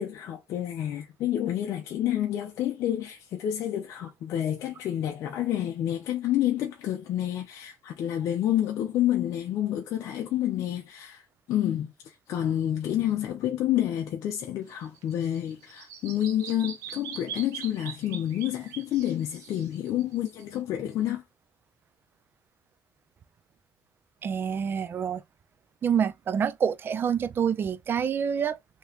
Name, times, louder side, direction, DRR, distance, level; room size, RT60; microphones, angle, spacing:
voice 1, 0.0-21.2, left 11 dB, 60° left, 0.6 m, -29 dB
Bird vocalization bird call bird song, 14.7-20.6, right 8 dB, 85° right, 1.0 m, -42 dB
voice 2, 24.2-25.2 25.8-28.6, right 7 dB, 35° right, 0.4 m, -27 dB
3.3 x 2.9 x 3.0 m
cardioid pair, 110°, 6 cm